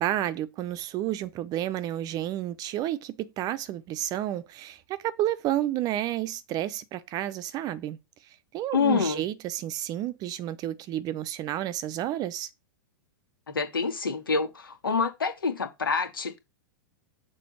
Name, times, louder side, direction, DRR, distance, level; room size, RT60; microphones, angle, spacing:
voice 1, 0.0-8.0 8.5-12.5, right 13 dB, 35° right, 0.6 m, -31 dB
voice 2, 8.7-9.2 13.5-16.4, left 5 dB, 80° left, 2.0 m, -27 dB
6.8 x 3.8 x 6.4 m
figure-of-eight pair, 100°, 11 cm